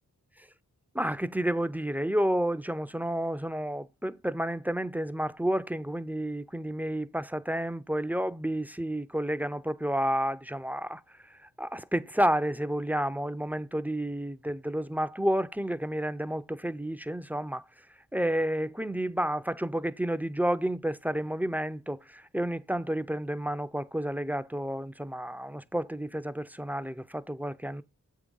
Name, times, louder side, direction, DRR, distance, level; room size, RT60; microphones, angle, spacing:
voice 1, 0.9-11.0 11.4-17.6 18.1-27.8, right 1 dB, 5° right, 0.4 m, -30 dB
7.8 x 3.7 x 5.3 m
cardioid pair, 45°, 37 cm